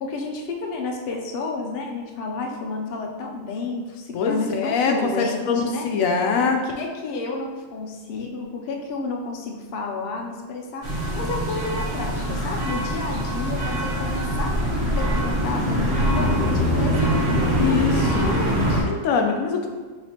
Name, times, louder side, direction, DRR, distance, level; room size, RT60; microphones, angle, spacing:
voice 1, 0.0-5.9 6.4-10.8 11.2-14.6 15.0-18.9, left 3 dB, 55° left, 0 dB, 0.7 m, -31 dB
voice 2, 4.1-6.6 17.6-18.4 18.9-19.7, left 5 dB, 80° left, 3 dB, 1.0 m, -23 dB
sound 1, 10.8-18.8, equal, 65° right, 1.7 m, -23 dB
5.0 x 3.8 x 2.8 m, 1.4 s
omnidirectional pair, 1.4 m